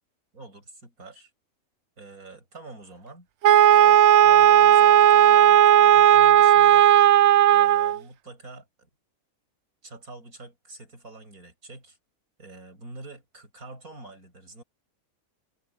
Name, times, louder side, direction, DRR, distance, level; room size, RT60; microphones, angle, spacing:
voice 1, 0.3-1.3 2.0-3.3 3.7-7.1 7.5-8.9 9.8-12.0 12.4-14.6, right 2 dB, 80° right, 7.1 m, -45 dB
Wind instrument woodwind instrument, 3.4-8.0, right 11 dB, 65° right, 0.7 m, -15 dB
omnidirectional pair, 1.5 m